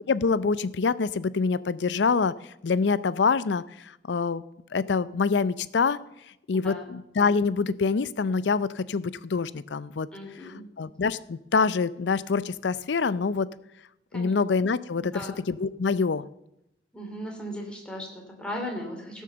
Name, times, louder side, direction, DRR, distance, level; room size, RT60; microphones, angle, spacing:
voice 1, 0.1-2.3 2.6-4.4 4.7-6.0 6.5-10.1 10.4-13.5 14.1-16.2, left 4 dB, 85° left, 17 dB, 0.5 m, -25 dB
voice 2, 6.5-6.9 10.1-10.6 14.1-14.3 15.0-15.4 16.9-19.2, equal, 5° left, 0 dB, 2.9 m, -37 dB
15.5 x 6.4 x 6.9 m, 0.85 s
head